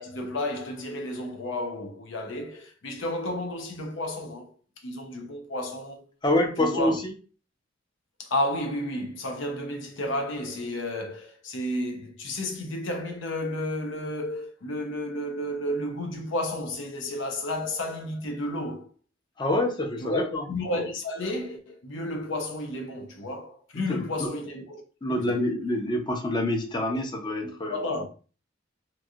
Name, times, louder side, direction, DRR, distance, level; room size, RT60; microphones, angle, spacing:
voice 1, 0.0-4.5 4.8-6.0 6.6-7.0 8.2-18.9 20.0-24.8 25.2-25.3 26.9-27.0 27.4-28.1, left 1 dB, 70° left, 0.7 m, -32 dB
voice 2, 6.2-7.1 19.4-20.4 23.9-24.3 25.0-27.8, left 1 dB, 25° left, 0.6 m, -26 dB
3.1 x 2.6 x 2.3 m
head